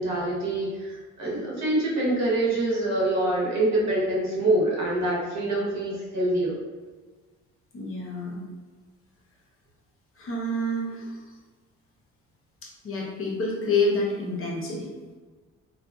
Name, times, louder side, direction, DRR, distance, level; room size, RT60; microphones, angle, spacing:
voice 1, 0.0-6.6, right 1 dB, 65° right, -5 dB, 1.0 m, -25 dB
voice 2, 7.7-8.4 10.2-11.2 12.8-14.9, left 2 dB, 45° left, -3 dB, 0.8 m, -28 dB
2.5 x 2.3 x 2.3 m, 1.4 s
cardioid pair, 90°, 30 cm